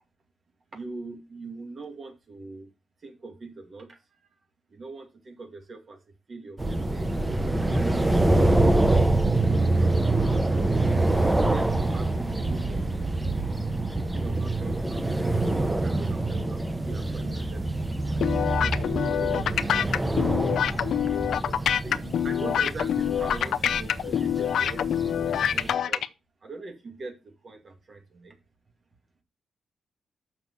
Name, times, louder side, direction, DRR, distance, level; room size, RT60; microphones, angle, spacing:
voice 1, 0.7-2.7 3.0-4.2 4.7-6.0 6.3-7.1 7.6-10.0 10.5-10.9 11.3-12.9 13.5-18.0 18.5-18.8 19.0-20.2 20.7-26.1 26.4-28.4, right 3 dB, 40° right, 2.0 m, -43 dB
sound 1, 6.6-25.7, right 2 dB, 10° right, 0.9 m, -26 dB
sound 2, 18.2-26.1, left 9 dB, 80° left, 0.5 m, -26 dB
6.4 x 5.9 x 5.4 m
cardioid pair, 105°, 0 cm